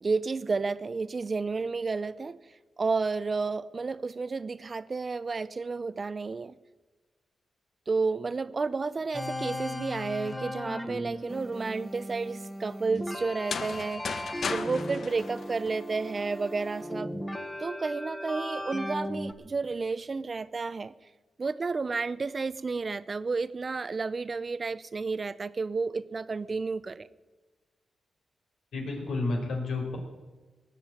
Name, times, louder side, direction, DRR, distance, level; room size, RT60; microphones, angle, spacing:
voice 1, 0.0-2.4 2.8-6.5 7.9-14.2 14.5-17.1 17.6-20.9 21.4-27.1, right 4 dB, 35° right, 16 dB, 0.7 m, -31 dB
sound 1, 9.1-19.3, left 1 dB, 10° left, 1.5 m, -37 dB
sound 2, 13.3-16.2, left 5 dB, 60° left, 1.0 m, -36 dB
voice 2, 28.7-30.0, left 3 dB, 80° left, 1 dB, 4.5 m, -31 dB
19.0 x 7.7 x 9.0 m, 1.3 s
cardioid pair, 110°, 0 cm